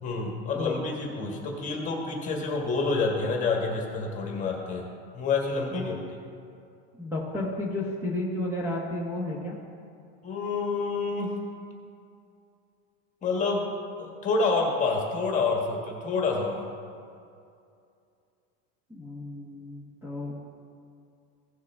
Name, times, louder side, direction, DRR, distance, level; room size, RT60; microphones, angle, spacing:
voice 1, 0.0-5.9 10.2-11.4 13.2-13.7 14.0-16.6, left 4 dB, 20° left, 0 dB, 1.5 m, -28 dB
voice 2, 7.0-9.6 18.9-20.4, left 2 dB, 5° right, -4 dB, 1.1 m, -32 dB
16.5 x 5.7 x 3.5 m, 2.4 s
supercardioid pair, 160°, 34 cm